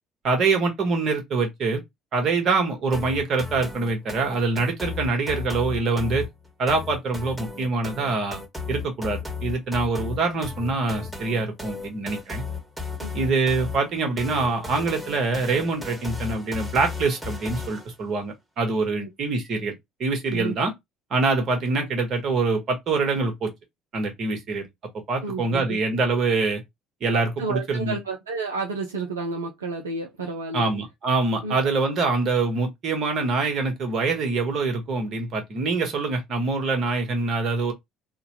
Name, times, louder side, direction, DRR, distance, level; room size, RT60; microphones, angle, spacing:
voice 1, 0.2-1.8 2.1-6.3 6.6-8.4 8.7-12.4 13.1-19.7 20.0-20.7 21.1-23.5 23.9-24.7 25.1-26.6 27.0-27.9 30.5-37.7, right 3 dB, 50° right, 1.4 m, -25 dB
sound 1, 2.9-17.9, left 4 dB, 5° right, 1.4 m, -35 dB
voice 2, 25.2-25.8 27.4-30.7 31.4-31.6, right 3 dB, 80° right, 0.5 m, -31 dB
3.4 x 2.3 x 3.1 m
figure-of-eight pair, 55°, 0 cm